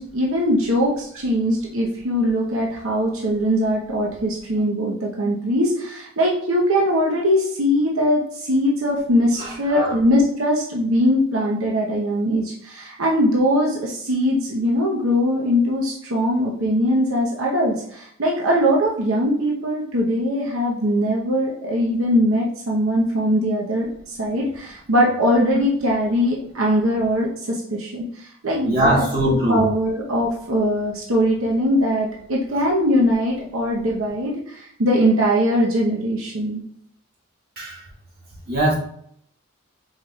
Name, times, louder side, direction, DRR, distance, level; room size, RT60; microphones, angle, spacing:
voice 1, 0.0-23.9 24.2-28.0 28.4-36.6, equal, 90° right, -3 dB, 0.9 m, -21 dB
voice 2, 9.4-9.9 28.6-29.6 37.6-37.8 38.5-38.7, right 1 dB, 45° right, -6 dB, 1.9 m, -21 dB
4.9 x 4.6 x 2.3 m, 0.68 s
head